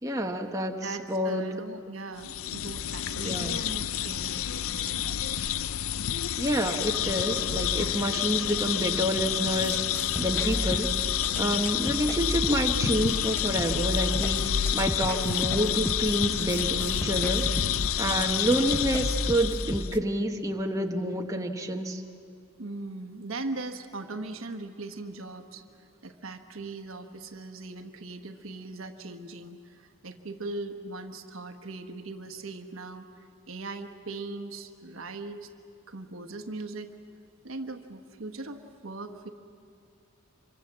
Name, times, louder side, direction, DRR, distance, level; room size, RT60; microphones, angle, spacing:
voice 1, 0.0-0.8 1.1-1.4 3.2-3.6 6.4-9.8 10.2-10.9 11.4-17.5 18.0-22.0, right 1 dB, 15° right, 2 dB, 1.3 m, -28 dB
voice 2, 0.8-5.2 11.3-11.8 18.0-18.4 22.6-33.1 33.5-35.5 35.9-36.9 37.4-39.3, right 2 dB, 65° right, 7 dB, 1.3 m, -39 dB
sound 1, 2.2-20.0, left 10 dB, 65° left, 0.5 m, -29 dB
sound 2, 9.5-20.0, left 1 dB, 10° left, 0.6 m, -34 dB
26.0 x 24.5 x 7.5 m, 2.4 s
head